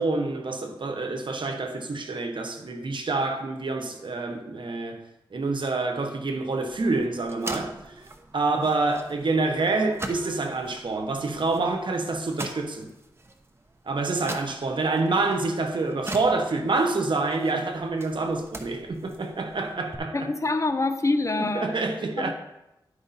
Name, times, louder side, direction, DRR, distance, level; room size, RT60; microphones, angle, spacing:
voice 1, 0.0-5.0 5.3-7.8 8.3-12.9 13.9-20.2 21.4-22.3, right 3 dB, 65° right, 1.1 m, -27 dB
sound 1, 6.7-20.0, right 2 dB, 30° right, 1.0 m, -42 dB
voice 2, 20.1-21.8 22.2-22.3, left 2 dB, 35° left, 0.8 m, -25 dB
11.0 x 4.9 x 4.2 m
cardioid pair, 60°, 9 cm